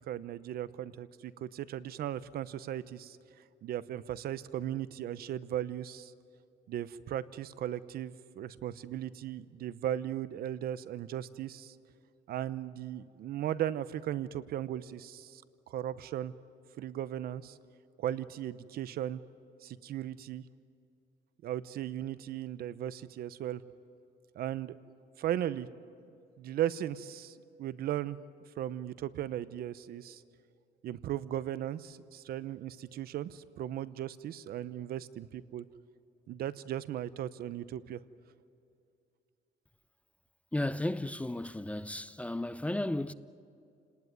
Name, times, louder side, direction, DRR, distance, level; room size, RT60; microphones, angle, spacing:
voice 1, 0.0-3.2 3.6-6.1 6.7-11.7 12.3-15.4 15.7-16.3 16.8-17.6 18.0-19.2 19.6-20.4 21.4-23.6 24.3-24.8 25.2-25.7 26.4-28.2 28.6-30.2 30.8-35.6 36.3-38.0, right 11 dB, 65° right, 0.9 m, -37 dB
voice 2, 40.5-43.1, left 1 dB, 10° left, 0.6 m, -34 dB
29.5 x 19.0 x 9.5 m
cardioid pair, 110°, 17 cm